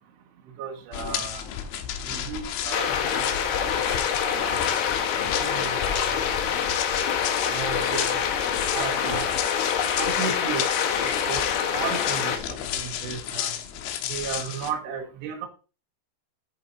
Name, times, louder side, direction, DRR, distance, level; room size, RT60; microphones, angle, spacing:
voice 1, 0.6-1.5 2.1-3.7 4.2-4.8 5.4-6.3 7.4-8.2 8.7-9.4 10.0-10.7 11.3-12.3 12.7-13.5 14.1-15.5, right 7 dB, 70° right, 0 dB, 3.7 m, -34 dB
sound 1, 0.9-14.7, left 10 dB, 90° left, 3.4 m, -33 dB
sound 2, 2.7-12.4, left 8 dB, 70° left, 2.9 m, -26 dB
10.5 x 8.7 x 2.7 m, 0.34 s
omnidirectional pair, 5.2 m